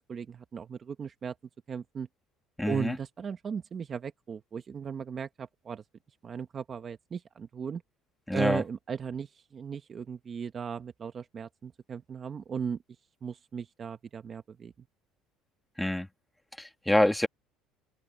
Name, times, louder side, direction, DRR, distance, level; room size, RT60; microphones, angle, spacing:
voice 1, 0.0-1.3 1.7-2.1 2.7-5.8 6.2-7.8 8.3-12.8 13.2-14.7, right 7 dB, 30° right, 0.9 m, -37 dB
voice 2, 2.6-3.0 8.3-8.6 15.8-16.1 16.6-17.3, left 1 dB, 5° left, 1.9 m, -26 dB
cardioid pair, 145°, 0 cm